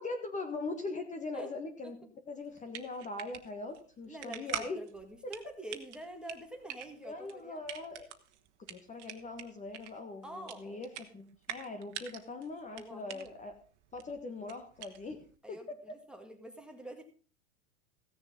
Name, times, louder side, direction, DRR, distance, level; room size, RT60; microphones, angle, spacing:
voice 1, 0.0-2.0 2.3-4.8 7.0-8.1 8.7-13.5 13.9-15.6, left 3 dB, 20° left, 5 dB, 1.5 m, -41 dB
sound 1, 2.4-15.4, right 11 dB, 75° right, 1.6 m, -46 dB
voice 2, 4.1-7.6 10.2-10.9 12.7-13.3 15.4-17.0, right 1 dB, ahead, 4 dB, 1.8 m, -46 dB
15.5 x 6.9 x 5.3 m, 0.40 s
supercardioid pair, 125°, 35 cm